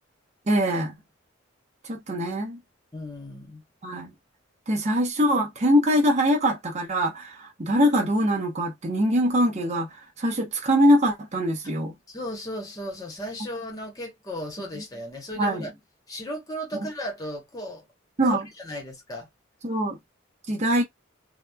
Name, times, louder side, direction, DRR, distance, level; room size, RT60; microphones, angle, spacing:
voice 1, 0.5-0.9 1.8-2.6 3.8-4.1 4.7-9.9 10.2-11.9 15.4-15.7 16.8-16.9 18.2-18.5 19.6-20.0 20.5-20.8, equal, 35° right, 0.7 m, -23 dB
voice 2, 2.9-3.6 12.1-15.7 16.1-17.8 18.2-19.3, equal, 20° left, 1.0 m, -35 dB
2.9 x 2.2 x 2.2 m
head